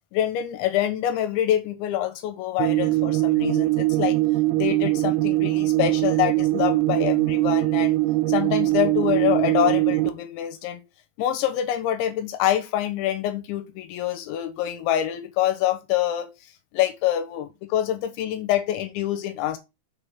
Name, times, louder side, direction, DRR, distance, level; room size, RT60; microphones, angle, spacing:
voice 1, 0.1-4.2 4.6-8.0 8.3-10.8 11.2-16.3 16.7-19.6, left 12 dB, 85° left, 3.1 m, -25 dB
sound 1, 2.6-10.1, right 19 dB, 85° right, 3.0 m, -22 dB
6.6 x 3.6 x 5.7 m
omnidirectional pair, 5.5 m